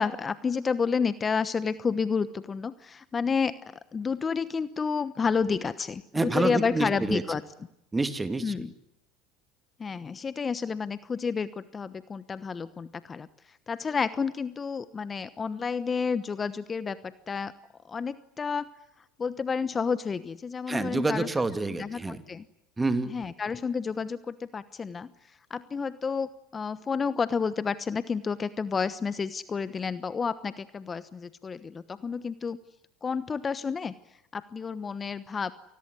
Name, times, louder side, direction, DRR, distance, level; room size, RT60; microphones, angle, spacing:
voice 1, 0.0-7.4 8.4-8.7 9.8-17.5 17.9-18.7 19.2-21.3 21.8-22.4 23.1-25.1 25.5-32.6 33.0-33.9 34.3-35.5, left 5 dB, 25° left, 15 dB, 1.1 m, -30 dB
voice 2, 6.1-7.2 7.9-8.7 20.7-22.2 22.8-23.1, right 3 dB, 15° right, 10 dB, 2.5 m, -28 dB
28.5 x 20.0 x 9.8 m, 0.81 s
hypercardioid pair, 85°, 0 cm